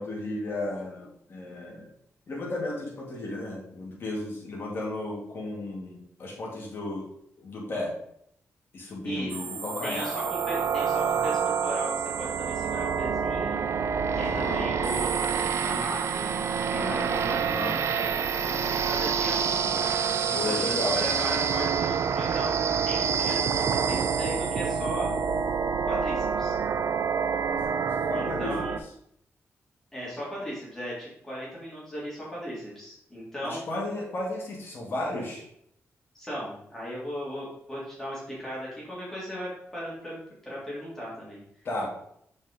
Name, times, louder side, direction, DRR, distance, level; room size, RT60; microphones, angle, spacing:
voice 1, 0.0-1.9 2.3-7.1 7.4-7.9 8.7-10.1 14.1-14.7 16.7-17.8 19.5-20.0 20.3-21.0 23.8-23.9 27.3-28.6 33.4-35.5 41.6-41.9, left 2 dB, 45° left, -3 dB, 2.4 m, -34 dB
sound 1, 9.3-28.8, right 6 dB, 60° right, 0.4 m, -27 dB
voice 2, 9.8-13.6 14.1-18.1 18.4-19.5 20.3-22.5 22.8-25.2 25.9-26.6 28.1-28.8 29.9-33.6 36.1-41.7, equal, 10° left, -8 dB, 3.0 m, -37 dB
7.7 x 5.1 x 3.8 m, 0.71 s
wide cardioid pair, 175°, 5 cm